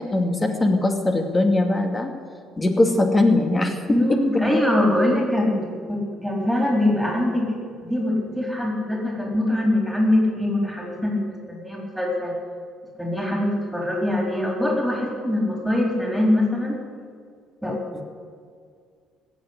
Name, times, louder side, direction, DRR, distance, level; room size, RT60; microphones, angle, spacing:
voice 1, 0.1-2.1 2.6-3.8 4.1-4.2 17.9-18.0, left 2 dB, 25° left, 4 dB, 2.5 m, -20 dB
voice 2, 3.9-11.2 11.5-12.3 13.0-16.8 17.6-17.8, left 1 dB, ahead, -1 dB, 4.3 m, -23 dB
16.5 x 7.4 x 9.8 m, 2.1 s
hypercardioid pair, 55°, 0 cm